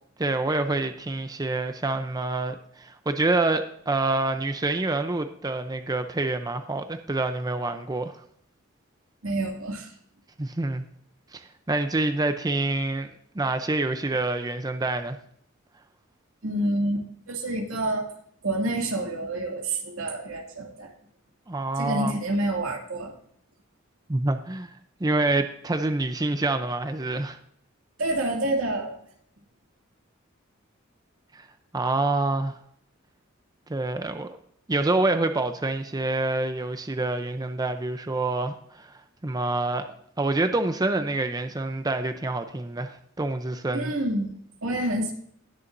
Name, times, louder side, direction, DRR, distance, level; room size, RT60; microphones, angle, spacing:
voice 1, 0.2-8.2 10.4-10.8 11.3-13.1 13.3-15.2 21.5-22.1 24.1-24.7 25.0-27.4 31.3-31.5 31.7-32.5 33.7-34.3 34.7-39.9 40.2-43.9, right 2 dB, 20° right, 8 dB, 0.6 m, -27 dB
voice 2, 9.2-9.9 16.4-18.1 18.4-20.9 21.8-23.1 28.0-29.0 43.7-44.3 44.6-45.1, right 1 dB, 80° right, 1 dB, 2.4 m, -28 dB
19.5 x 6.9 x 2.6 m, 0.66 s
head